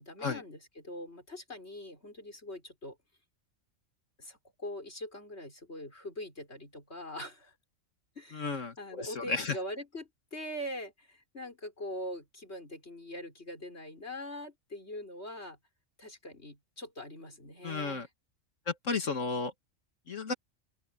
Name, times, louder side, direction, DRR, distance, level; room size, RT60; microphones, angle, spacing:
voice 1, 0.0-3.0 4.2-7.5 8.1-15.6 16.0-18.1, left 1 dB, 55° left, 6.7 m, -43 dB
voice 2, 8.3-9.6 17.6-18.1 18.7-19.5 20.1-20.3, left 4 dB, 70° left, 2.1 m, -33 dB
open air
omnidirectional pair, 1.4 m